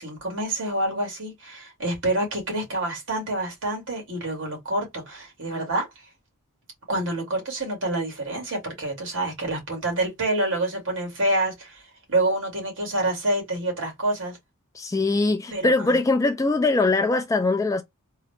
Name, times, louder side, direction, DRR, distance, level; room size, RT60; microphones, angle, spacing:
voice 1, 0.0-5.9 6.9-14.4 15.5-16.0, right 1 dB, 55° right, 2.1 m, -27 dB
voice 2, 14.8-17.8, left 3 dB, 15° left, 0.3 m, -22 dB
3.7 x 2.2 x 3.5 m
head